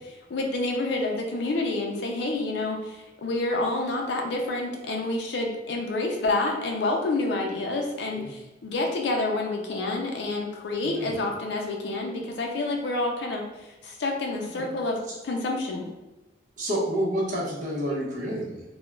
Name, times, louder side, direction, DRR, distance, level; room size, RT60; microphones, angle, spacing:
voice 1, 0.3-13.4 13.8-15.0 15.2-15.9, left 2 dB, 75° left, 1 dB, 0.4 m, -28 dB
voice 2, 10.8-11.2 14.5-14.6 15.1-15.2 16.6-18.6, equal, 45° right, -4 dB, 0.7 m, -29 dB
2.3 x 2.1 x 3.0 m, 1.1 s
head